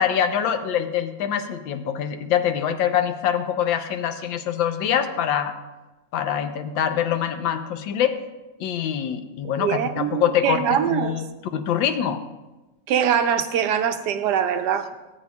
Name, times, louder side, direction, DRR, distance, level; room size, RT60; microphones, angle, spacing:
voice 1, 0.0-5.5 6.1-8.2 8.6-10.6 10.9-11.2 11.5-12.2, left 9 dB, 85° left, 1.5 m, -24 dB
voice 2, 9.6-11.2 12.9-14.9, right 9 dB, 70° right, 1.1 m, -23 dB
16.5 x 8.5 x 2.3 m
omnidirectional pair, 2.1 m